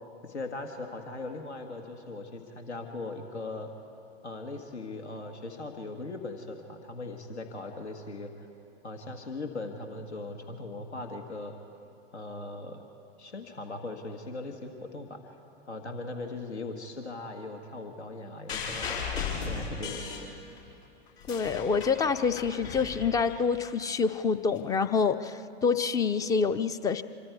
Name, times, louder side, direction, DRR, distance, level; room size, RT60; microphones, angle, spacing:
voice 1, 0.2-3.7 4.2-8.5 8.8-11.6 12.1-12.8 13.2-15.4 15.7-20.3, left 2 dB, 80° left, 5 dB, 1.7 m, -39 dB
sound 1, 18.5-20.7 21.1-23.7 24.6-24.7, left 5 dB, 65° left, 5.6 m, -36 dB
voice 2, 21.3-27.0, left 5 dB, 10° left, 13 dB, 0.4 m, -27 dB
27.0 x 23.5 x 4.7 m, 2.7 s
figure-of-eight pair, 100°, 33 cm